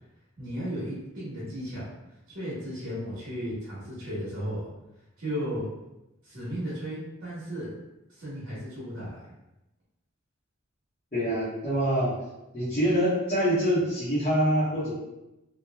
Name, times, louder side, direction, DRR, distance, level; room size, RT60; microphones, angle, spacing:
voice 1, 0.4-1.9 2.3-4.7 5.2-5.7 6.2-7.7 8.1-9.3, equal, 60° right, -10 dB, 1.1 m, -35 dB
voice 2, 11.1-12.1 12.5-14.9, equal, 30° left, -14 dB, 1.1 m, -25 dB
2.9 x 2.6 x 2.2 m, 0.93 s
head